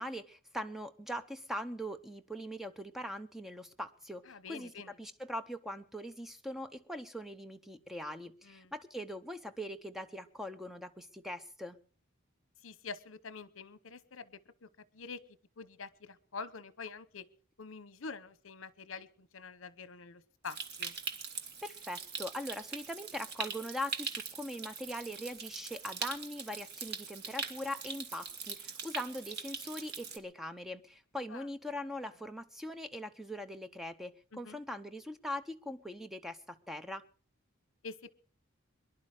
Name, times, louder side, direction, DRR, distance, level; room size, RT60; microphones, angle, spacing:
voice 1, 0.0-4.7 5.0-11.8 21.6-37.0, equal, ahead, 10 dB, 0.8 m, -41 dB
voice 2, 4.3-4.9 8.4-8.7 12.6-14.7 14.9-15.2 15.6-17.3 17.6-20.9 31.3-31.5 34.3-34.6 37.8-38.1, left 4 dB, 75° left, 17 dB, 0.9 m, -46 dB
Stream, 20.5-30.2, right 6 dB, 55° right, 1.4 m, -42 dB
23.5 x 11.0 x 4.9 m, 0.41 s
head